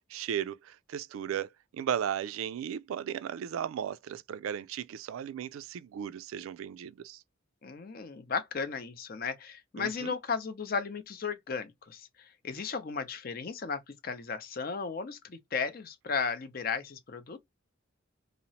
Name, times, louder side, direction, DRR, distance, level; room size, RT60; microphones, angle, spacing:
voice 1, 0.1-7.2 9.8-10.1, right 9 dB, 80° right, 0.3 m, -36 dB
voice 2, 7.6-17.4, left 5 dB, 45° left, 0.5 m, -35 dB
2.8 x 2.0 x 2.7 m
head